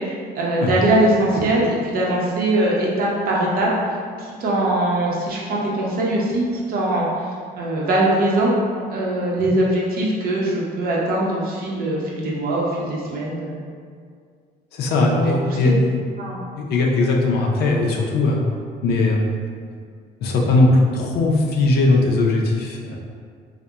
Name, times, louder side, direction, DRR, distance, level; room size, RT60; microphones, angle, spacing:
voice 1, 0.3-3.7 4.2-7.1 7.6-8.5 8.9-13.5 15.1-15.6 16.2-16.4, right 1 dB, 60° right, -4 dB, 0.6 m, -21 dB
voice 2, 14.7-16.0 16.6-18.4 18.8-19.3 20.2-23.0, left 2 dB, 70° left, 0 dB, 0.4 m, -19 dB
2.7 x 2.0 x 2.3 m, 2.1 s
cardioid pair, 110°, 17 cm